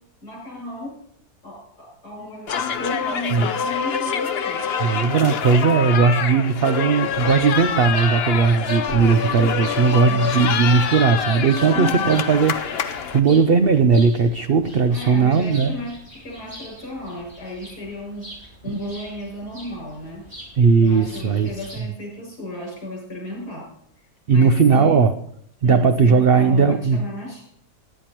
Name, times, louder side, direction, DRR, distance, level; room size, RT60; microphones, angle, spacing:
voice 1, 0.2-1.0 1.4-4.7 8.8-10.2 11.6-12.2 14.9-18.3 18.6-20.3 20.8-23.7 24.3-25.1 25.6-27.4, left 1 dB, 80° left, -2 dB, 6.8 m, -34 dB
sound 1, 2.5-13.2, left 7 dB, 55° left, 0.7 m, -25 dB
voice 2, 4.8-15.8 18.7-18.8 20.6-21.5 24.3-25.1 25.6-27.0, right 5 dB, 80° right, 9 dB, 0.5 m, -18 dB
sound 2, 7.1-21.8, equal, 15° right, 6.4 m, -42 dB
19.5 x 10.0 x 3.0 m, 0.67 s
omnidirectional pair, 1.7 m